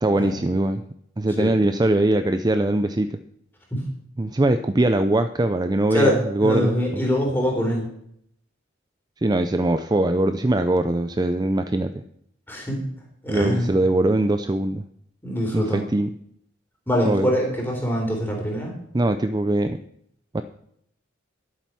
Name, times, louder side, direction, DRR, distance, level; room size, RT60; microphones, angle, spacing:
voice 1, 0.0-0.8 1.2-3.2 4.2-7.0 9.2-12.0 13.3-14.9 15.5-16.1 17.0-17.3 18.9-19.8 20.3-20.4, right 1 dB, 20° right, 9 dB, 0.4 m, -21 dB
voice 2, 5.9-7.9 12.5-12.8 13.2-13.7 15.2-15.8 16.9-18.7, equal, 10° left, 0 dB, 3.7 m, -23 dB
11.5 x 8.6 x 6.1 m, 0.70 s
head